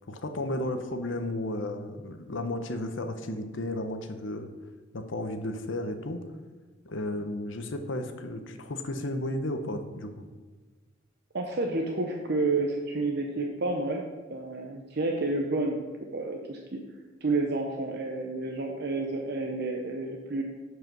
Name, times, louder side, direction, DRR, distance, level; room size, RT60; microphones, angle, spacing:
voice 1, 0.1-4.5 4.9-6.2 6.8-10.2, left 1 dB, 70° left, 7 dB, 0.9 m, -33 dB
voice 2, 11.3-14.0 14.3-15.8 16.1-16.8 17.2-20.4, right 2 dB, 55° right, 1 dB, 0.7 m, -30 dB
7.9 x 4.9 x 6.1 m, 1.3 s
head